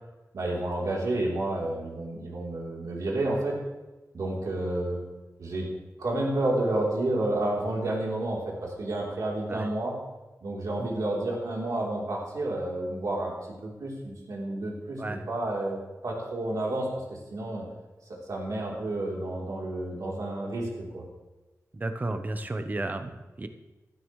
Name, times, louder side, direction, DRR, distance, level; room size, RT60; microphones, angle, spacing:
voice 1, 0.3-3.5 4.1-5.0 5.4-5.7 6.0-9.9 10.4-13.3 13.6-17.6 18.1-21.0, right 1 dB, 75° right, -3 dB, 3.4 m, -30 dB
voice 2, 21.7-23.5, right 2 dB, 30° right, 8 dB, 0.9 m, -33 dB
16.0 x 12.5 x 3.2 m, 1.1 s
wide cardioid pair, 140°, 6 cm